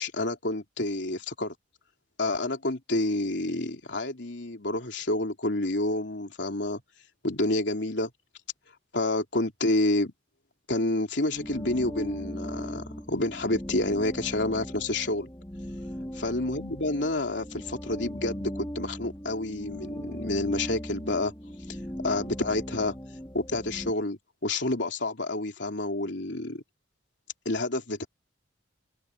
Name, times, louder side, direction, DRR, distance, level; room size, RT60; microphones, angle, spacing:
voice 1, 0.0-1.5 2.2-6.8 7.2-8.1 8.9-10.1 10.7-15.3 16.2-21.3 22.0-23.0 23.3-26.6 27.4-28.1, left 2 dB, 70° left, 3.2 m, -29 dB
sound 1, 11.3-23.9, equal, 15° left, 3.3 m, -38 dB
head